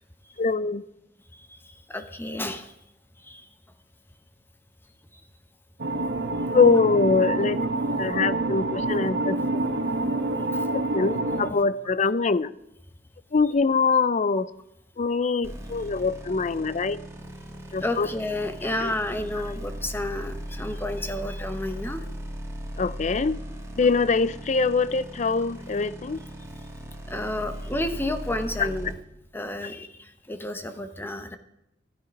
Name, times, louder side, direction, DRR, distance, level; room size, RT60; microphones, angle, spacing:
voice 1, 0.4-0.8 6.5-7.6 8.0-9.4 10.7-12.5 13.3-14.5 15.0-17.0 17.7-18.1 18.8-18.9 22.8-23.4 23.8-26.2 28.6-28.7, left 4 dB, 40° left, 0.5 m, -23 dB
voice 2, 1.9-2.7 3.2-3.5 15.4-15.6 17.8-22.0 25.5-25.7 27.1-28.9 29.3-31.4, left 1 dB, 10° left, 0.9 m, -31 dB
sound 1, 5.8-11.5, right 2 dB, 75° right, 1.3 m, -27 dB
sound 2, 15.4-29.0, equal, 15° right, 2.0 m, -38 dB
13.0 x 11.0 x 5.2 m
head